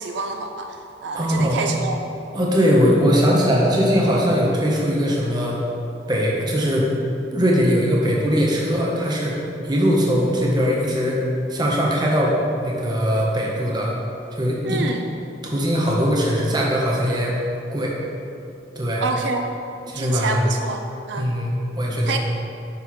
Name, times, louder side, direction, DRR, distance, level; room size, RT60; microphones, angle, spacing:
voice 1, 0.0-2.0 14.6-15.1 19.0-19.4 19.9-21.3 22.1-22.2, right 4 dB, 75° right, 5 dB, 0.4 m, -27 dB
voice 2, 1.1-1.6 2.3-5.6 6.1-6.9 7.3-9.4 9.6-11.2 11.5-13.9 14.3-14.9 15.4-17.3 17.7-17.9 18.8-19.0 19.9-20.6 21.2-22.2, equal, 25° right, -3 dB, 0.9 m, -20 dB
6.3 x 5.9 x 3.1 m, 2.8 s
head